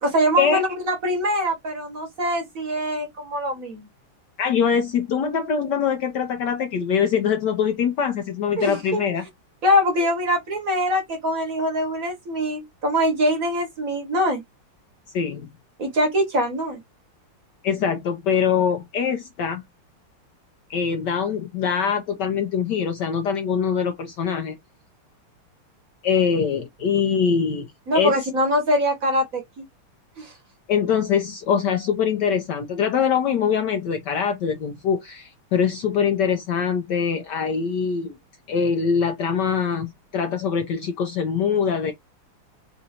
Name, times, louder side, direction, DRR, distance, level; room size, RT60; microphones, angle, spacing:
voice 1, 0.0-3.9 8.6-9.0 9.6-14.4 15.8-16.8 27.9-29.7 30.2-30.3, equal, 45° right, 1.3 m, -23 dB
voice 2, 4.4-9.2 15.1-15.5 17.6-19.6 20.7-24.6 26.0-28.2 30.7-38.2 38.5-41.9, left 7 dB, 70° left, 1.0 m, -23 dB
3.9 x 2.6 x 4.2 m
omnidirectional pair, 2.4 m